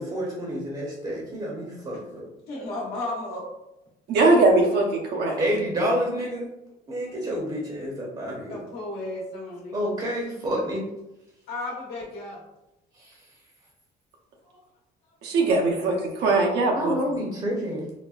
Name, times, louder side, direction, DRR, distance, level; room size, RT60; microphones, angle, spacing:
voice 1, 0.0-2.2 4.1-4.3 5.4-6.5 6.9-8.6 9.7-10.9 12.9-13.1 16.8-17.9, equal, 30° right, -2 dB, 0.7 m, -29 dB
voice 2, 2.5-3.5 8.5-9.8 11.5-12.4 14.4-14.6, left 2 dB, 70° left, -3 dB, 1.0 m, -34 dB
voice 3, 4.1-5.5 15.2-17.0, right 2 dB, 75° right, 0 dB, 0.7 m, -21 dB
4.1 x 2.1 x 2.3 m, 0.92 s
cardioid pair, 110°, 17 cm